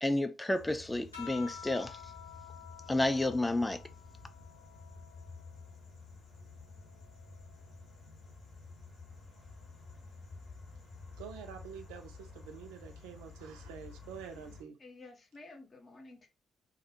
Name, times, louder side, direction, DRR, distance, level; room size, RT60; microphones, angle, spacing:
voice 1, 0.0-2.0 2.9-3.8, left 1 dB, 15° left, 0.4 m, -30 dB
sound 1, 0.5-14.6, left 4 dB, 60° left, 1.0 m, -51 dB
sound 2, 1.1-5.9 6.4-8.1 9.3-9.8, left 8 dB, 85° left, 0.4 m, -52 dB
voice 2, 11.2-14.8, right 7 dB, 70° right, 0.3 m, -47 dB
voice 3, 14.8-16.3, left 2 dB, 40° left, 0.7 m, -52 dB
2.3 x 2.1 x 2.7 m
figure-of-eight pair, 40°, 0 cm